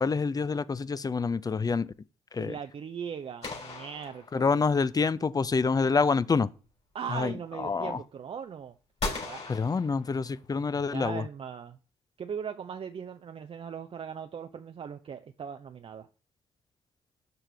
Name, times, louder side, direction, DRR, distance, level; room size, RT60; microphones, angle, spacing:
voice 1, 0.0-1.9 2.3-2.5 4.3-6.5 7.1-7.3 7.6-8.0 9.5-11.2, left 4 dB, 30° left, 0.5 m, -27 dB
voice 2, 2.4-4.6 6.9-8.8 9.2-9.5 10.8-11.8 12.2-16.1, right 7 dB, 45° right, 0.5 m, -39 dB
sound 1, 3.4-4.9 9.0-10.6, left 3 dB, 50° left, 4.0 m, -38 dB
6.8 x 5.8 x 3.4 m
hypercardioid pair, 45°, 13 cm